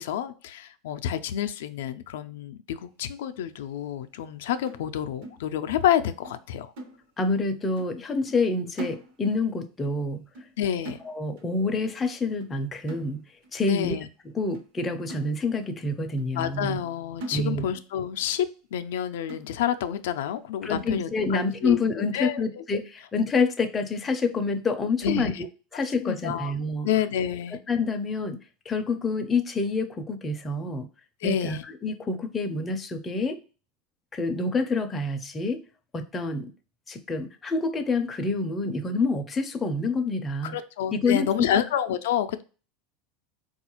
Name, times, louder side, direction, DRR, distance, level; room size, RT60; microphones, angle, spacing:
voice 1, 0.0-6.7 10.6-11.0 13.7-14.1 16.3-22.6 25.0-25.4 26.0-26.5 26.8-27.6 31.2-31.6 40.4-42.4, left 10 dB, 85° left, 9 dB, 0.3 m, -29 dB
sound 1, 4.7-6.0 6.2-6.5 6.8-7.5 7.8-8.0 8.3-9.5 9.8-10.0 10.3-10.6 10.8-11.5 11.9-12.1 12.4-12.6 12.9-13.5 14.0-14.1 14.5-14.7 15.1-15.8 16.2-16.3 16.7-16.9 17.2-17.9 18.2-18.3 18.8-18.9 19.3-19.8 20.3-20.4 20.8-21.0, right 1 dB, 60° right, 0.7 m, -42 dB
voice 2, 7.2-10.2 11.0-13.2 13.5-13.9 14.3-16.8 17.3-17.6 20.6-25.5 25.7-26.9 27.7-28.4 28.7-30.9 31.2-33.4 34.1-35.6 35.9-36.5 36.9-40.6 40.9-41.5, left 3 dB, 15° left, 5 dB, 0.4 m, -27 dB
4.1 x 2.3 x 2.9 m, 0.35 s
supercardioid pair, 160°, 0 cm